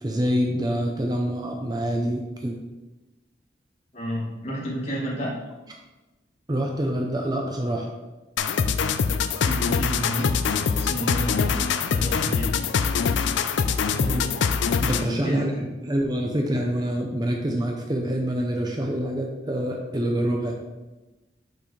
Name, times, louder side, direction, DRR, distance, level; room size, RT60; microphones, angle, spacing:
voice 1, 0.0-2.6 6.5-7.9 13.9-14.3 14.8-15.5 15.8-20.5, equal, 20° right, 1 dB, 0.6 m, -26 dB
voice 2, 3.9-5.3 9.4-10.3 10.8-12.5 15.0-15.6, equal, 35° left, -6 dB, 2.1 m, -31 dB
sound 1, 8.4-15.2, left 6 dB, 80° left, 0.4 m, -24 dB
6.5 x 5.8 x 3.2 m, 1.1 s
head